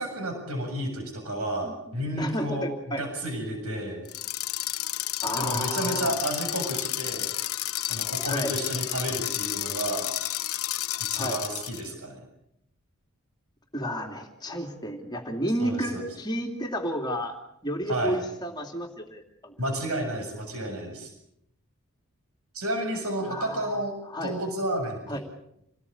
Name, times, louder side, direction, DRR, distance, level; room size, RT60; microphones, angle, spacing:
voice 1, 0.0-4.0 5.3-7.3 7.8-10.1 11.1-12.2 15.6-16.0 17.9-18.2 19.6-21.1 22.5-24.0 24.2-25.2, right 1 dB, 75° right, 4 dB, 7.3 m, -31 dB
voice 2, 1.6-3.0 5.2-6.1 8.3-8.6 11.2-11.4 13.7-17.4 17.6-19.6 23.2-23.8 24.1-24.4 25.1-25.2, equal, 20° left, 3 dB, 2.7 m, -32 dB
sound 1, 4.0-11.9, left 15 dB, 80° left, 1.0 m, -31 dB
28.0 x 19.5 x 8.7 m, 0.78 s
head